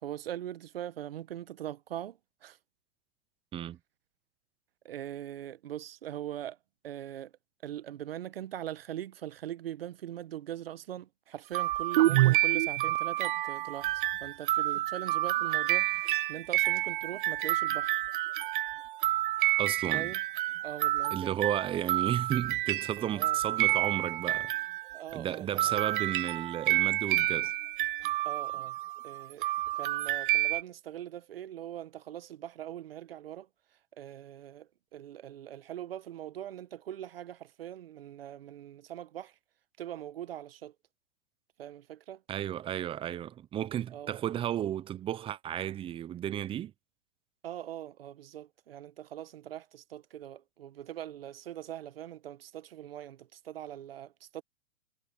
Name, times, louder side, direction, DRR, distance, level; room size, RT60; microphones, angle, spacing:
voice 1, 0.0-2.6 4.8-6.6 6.8-7.3 7.6-18.0 19.9-20.2 20.6-21.3 23.1-23.4 24.9-25.8 28.2-28.8 29.0-33.5 33.9-39.4 39.8-40.7 41.6-42.2 43.9-44.2 47.4-54.4, right 11 dB, 75° right, 1.2 m, -42 dB
sound 1, 11.5-25.1 25.6-30.6, right 16 dB, 60° right, 0.7 m, -29 dB
voice 2, 19.6-20.1 21.1-24.5 25.1-27.5 42.3-46.7, right 11 dB, 20° right, 0.6 m, -33 dB
hypercardioid pair, 125°, 29 cm